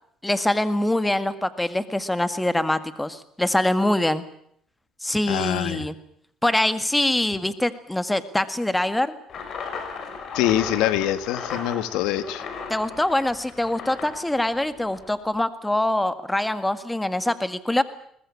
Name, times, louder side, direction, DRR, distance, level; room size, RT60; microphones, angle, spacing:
voice 1, 0.2-4.2 5.0-6.0 6.4-9.2 12.7-17.8, left 1 dB, 10° left, 11 dB, 1.9 m, -24 dB
voice 2, 5.3-5.9 10.3-12.4, left 12 dB, 85° left, 12 dB, 1.7 m, -24 dB
sound 1, 9.3-15.1, left 5 dB, 50° left, 5.8 m, -36 dB
22.0 x 20.0 x 8.6 m, 0.68 s
cardioid pair, 95°, 0 cm